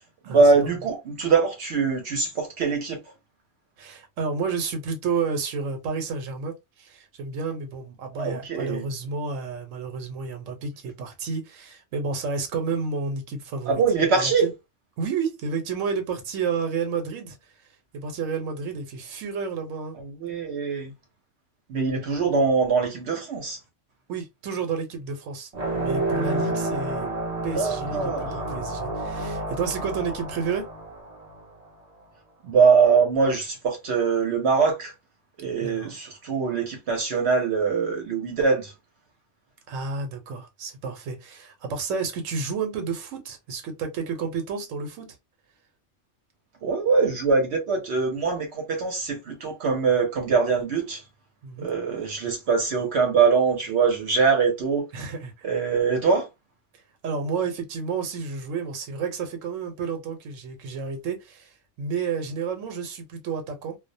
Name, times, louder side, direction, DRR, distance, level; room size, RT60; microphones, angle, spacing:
voice 1, 0.3-3.0 8.2-8.8 13.7-14.5 20.2-20.9 21.7-23.6 27.5-28.3 32.4-34.9 35.4-38.7 46.6-51.0 51.6-54.9 55.4-56.3, right 5 dB, 65° right, 0.9 m, -23 dB
voice 2, 3.8-13.8 14.2-14.5 15.0-17.5 17.9-20.0 24.1-27.1 27.4-30.7 35.6-35.9 39.7-45.2 51.4-51.7 54.9-55.5 57.0-63.8, right 5 dB, 90° right, 1.0 m, -31 dB
sound 1, 25.5-31.7, right 2 dB, 45° right, 0.6 m, -30 dB
2.3 x 2.0 x 2.6 m
omnidirectional pair, 1.3 m